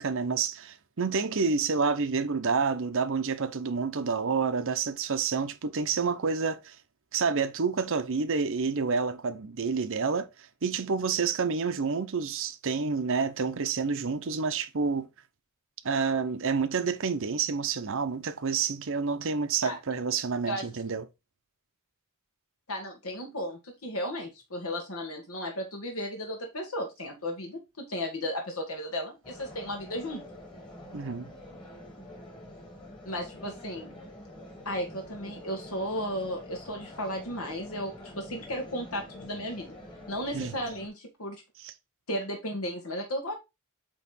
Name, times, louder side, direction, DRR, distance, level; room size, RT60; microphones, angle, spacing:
voice 1, 0.0-6.7 7.1-10.3 10.6-15.1 15.8-21.0 30.9-31.3 40.3-40.5 41.6-41.7, right 5 dB, 60° right, 0.7 m, -29 dB
voice 2, 22.7-30.2 33.0-33.9 34.6-39.8 40.1-41.4 42.1-43.3, equal, 75° left, 1.7 m, -34 dB
sound 1, 29.2-40.9, left 1 dB, 20° left, 1.9 m, -46 dB
8.5 x 3.1 x 4.1 m
head